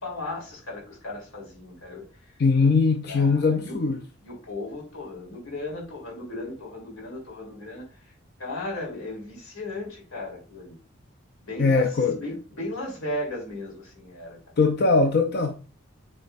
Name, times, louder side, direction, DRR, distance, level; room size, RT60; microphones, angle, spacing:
voice 1, 0.0-2.0 2.6-2.7 3.0-3.8 4.2-7.9 8.4-10.8 11.4-14.4, left 2 dB, 80° left, 3.4 m, -36 dB
voice 2, 2.4-4.0 11.6-12.2 14.6-15.5, left 4 dB, 50° left, 0.5 m, -21 dB
9.8 x 4.4 x 2.5 m
head